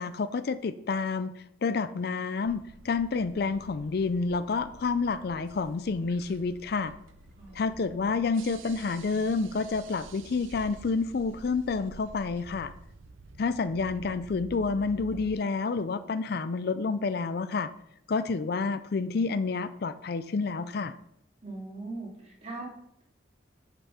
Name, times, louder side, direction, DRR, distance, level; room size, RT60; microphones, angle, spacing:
voice 1, 0.0-6.9 7.5-12.7 13.4-17.7 18.1-20.9, left 4 dB, 50° left, 13 dB, 0.4 m, -29 dB
sound 1, 2.4-15.4, right 3 dB, 90° right, 0.7 m, -50 dB
voice 2, 7.4-8.1 21.4-22.7, right 2 dB, 35° right, -3 dB, 2.8 m, -41 dB
8.1 x 6.0 x 5.5 m, 0.76 s
head